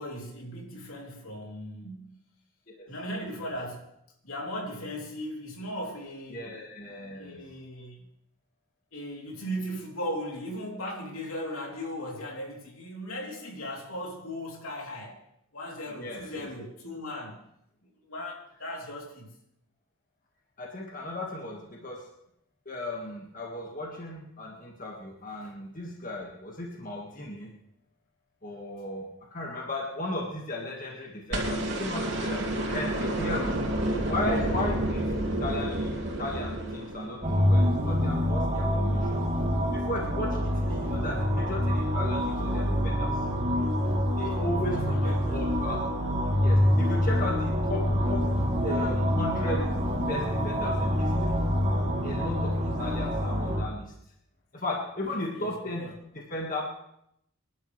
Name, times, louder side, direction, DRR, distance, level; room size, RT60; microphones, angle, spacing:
voice 1, 0.0-2.2 2.9-3.9 4.2-6.5 7.1-8.0 8.9-15.2 15.5-17.4 17.8-19.3 25.4-25.5 44.5-45.5 55.1-55.5 55.8-55.9, equal, 80° left, 0 dB, 3.3 m, -37 dB
voice 2, 2.8-3.5 6.3-7.4 15.9-16.5 20.6-22.1 22.7-27.5 28.4-33.6 34.1-35.1 35.4-39.2 39.7-43.2 44.2-45.9 46.4-49.8 50.1-51.4 52.0-53.9 54.5-56.6, left 1 dB, 40° left, -1 dB, 1.8 m, -36 dB
sound 1, 31.3-37.5 39.0-39.1, right 1 dB, 55° right, 3.1 m, -29 dB
sound 2, 37.2-53.6, equal, 30° right, 2.9 m, -26 dB
26.0 x 11.5 x 3.3 m, 0.75 s
head